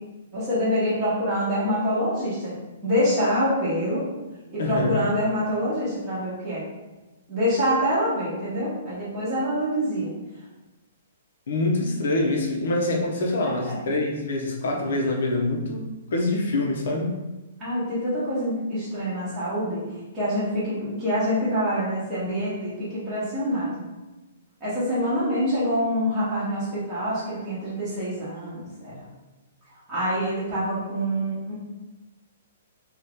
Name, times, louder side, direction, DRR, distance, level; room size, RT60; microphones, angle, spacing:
voice 1, 0.3-2.5 2.8-4.0 4.5-6.7 7.3-10.1 13.4-13.9 17.6-19.8 20.1-23.8 24.6-29.0 29.9-31.5, equal, 10° right, -12 dB, 0.8 m, -26 dB
voice 2, 4.6-5.0 11.5-17.2, left 2 dB, 60° left, 1 dB, 0.6 m, -25 dB
2.7 x 2.3 x 3.4 m, 1.1 s
hypercardioid pair, 175°, 0 cm